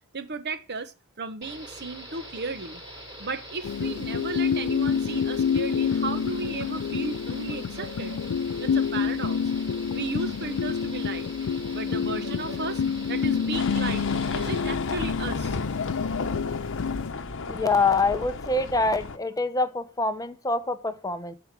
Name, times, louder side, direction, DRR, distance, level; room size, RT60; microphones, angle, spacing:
voice 1, 0.1-2.8 3.2-8.2 8.6-9.4 9.9-11.3 11.7-14.1 14.3-15.6, right 4 dB, 50° right, 1.0 m, -35 dB
sound 1, 1.4-14.6, equal, 20° right, 5.8 m, -43 dB
sound 2, 3.6-17.1, left 6 dB, 85° left, 0.4 m, -28 dB
sound 3, 13.5-19.2, left 4 dB, 60° left, 0.9 m, -32 dB
voice 2, 17.5-21.3, left 3 dB, 15° left, 0.7 m, -25 dB
11.5 x 5.0 x 4.7 m
head